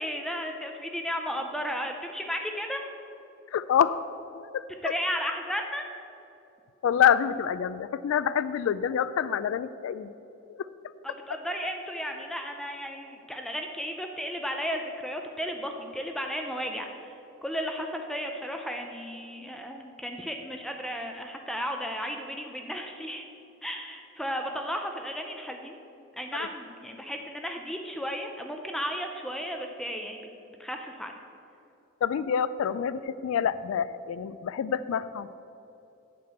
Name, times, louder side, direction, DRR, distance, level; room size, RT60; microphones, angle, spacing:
voice 1, 0.0-2.8 4.8-5.8 11.0-17.1 17.4-23.2 23.6-25.8 26.1-30.3 30.6-31.1, equal, ahead, 3 dB, 0.5 m, -34 dB
voice 2, 3.5-4.0 4.4-4.9 6.8-10.1 10.5-10.7 26.3-26.5 32.0-35.3, left 8 dB, 70° left, 16 dB, 0.3 m, -27 dB
8.5 x 5.9 x 7.8 m, 2.8 s
head